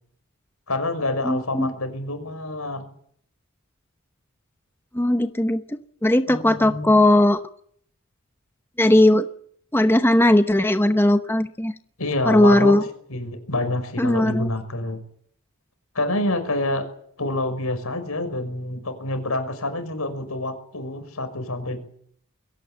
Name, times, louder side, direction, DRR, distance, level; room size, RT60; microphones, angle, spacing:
voice 1, 0.7-2.9 6.3-6.9 12.0-12.8 13.1-15.0 15.9-16.9 17.2-21.8, left 2 dB, 85° left, 8 dB, 5.8 m, -27 dB
voice 2, 1.2-1.7 4.9-5.6 6.0-7.4 8.8-9.2 9.7-11.7 12.3-12.8 14.0-14.5, left 1 dB, 10° left, 8 dB, 0.9 m, -18 dB
22.0 x 17.5 x 9.0 m, 0.63 s
head